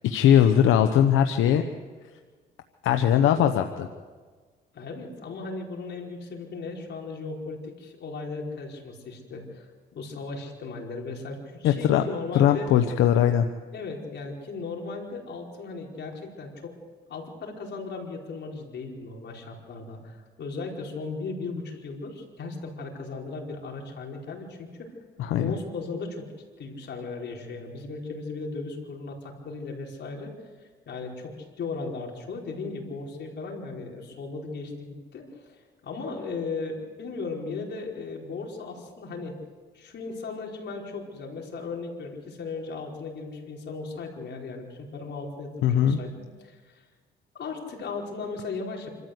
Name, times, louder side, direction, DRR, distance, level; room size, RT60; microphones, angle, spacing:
voice 1, 0.0-1.6 2.8-3.9 11.6-12.0 12.3-13.5 25.2-25.5 45.6-46.0, left 10 dB, 90° left, 7 dB, 1.0 m, -20 dB
voice 2, 4.7-12.7 13.7-16.7 17.1-24.9 25.4-26.3 26.6-30.3 30.9-39.4 39.7-46.8 47.3-48.9, left 4 dB, 60° left, 0 dB, 4.9 m, -37 dB
26.5 x 13.5 x 8.1 m, 1.5 s
cardioid pair, 90°, 20 cm